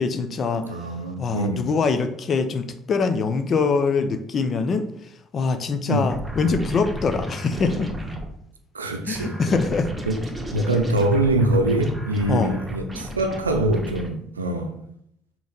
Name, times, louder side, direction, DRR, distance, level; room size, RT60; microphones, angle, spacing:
voice 1, 0.0-0.7 1.2-4.8 5.3-7.9 9.1-9.9 12.3-12.6, left 4 dB, 40° left, 9 dB, 0.6 m, -23 dB
voice 2, 0.6-1.7 5.9-6.0 8.7-9.4 10.1-10.2 10.5-14.7, right 2 dB, 85° right, 5 dB, 0.6 m, -23 dB
sound 1, 6.1-8.3 9.1-14.1, equal, 10° right, 1.5 m, -33 dB
6.2 x 3.1 x 5.2 m, 0.72 s
figure-of-eight pair, 50°, 0 cm